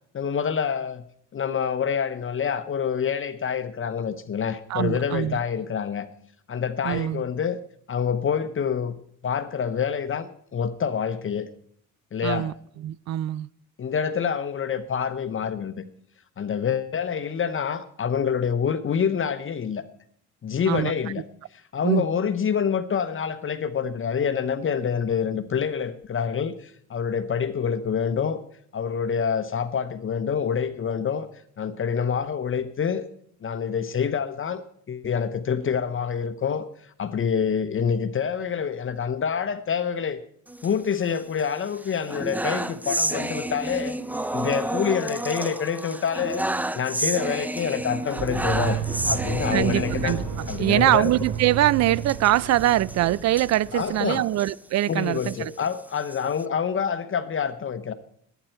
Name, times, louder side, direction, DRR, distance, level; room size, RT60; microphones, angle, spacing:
voice 1, 0.1-1.0 1.3-6.1 6.5-7.6 7.9-8.9 9.2-11.5 12.1-12.5 13.8-15.8 16.4-19.8 20.4-21.2 21.5-28.4 28.7-31.3 31.6-33.1 33.4-34.6 34.9-36.7 37.0-40.2 40.6-44.0 44.3-46.4 46.7-48.8 49.0-51.1 53.7-54.2 54.9-57.9, left 7 dB, 45° left, 0.9 m, -27 dB
voice 2, 4.7-5.4 6.8-7.2 12.2-12.5 12.8-13.5 20.7-20.9 21.8-22.0 49.5-50.2 50.6-55.5, right 14 dB, 60° right, 0.5 m, -23 dB
sound 1, 40.5-41.4 41.8-50.6 51.0-51.1 51.4-51.5 52.0-54.5 55.0-56.4, right 1 dB, 5° right, 0.6 m, -31 dB
sound 2, 48.2-53.9, right 6 dB, 80° right, 3.6 m, -32 dB
19.5 x 9.1 x 4.5 m
cardioid pair, 90°, 30 cm